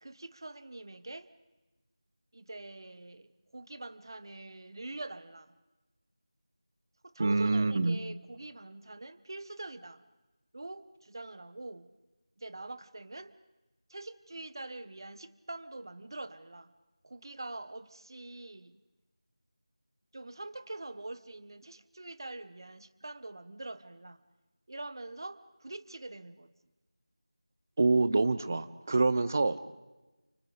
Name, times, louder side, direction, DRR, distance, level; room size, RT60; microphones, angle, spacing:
voice 1, 0.0-1.3 2.3-5.5 7.0-10.0 10.5-11.9 12.4-13.3 13.9-16.7 17.0-18.8 20.1-24.2 24.7-26.5, right 2 dB, 45° right, 1.1 m, -44 dB
voice 2, 7.2-8.0 27.8-29.7, right 3 dB, 30° right, 0.9 m, -26 dB
30.0 x 28.5 x 5.1 m
figure-of-eight pair, 170°, 3 cm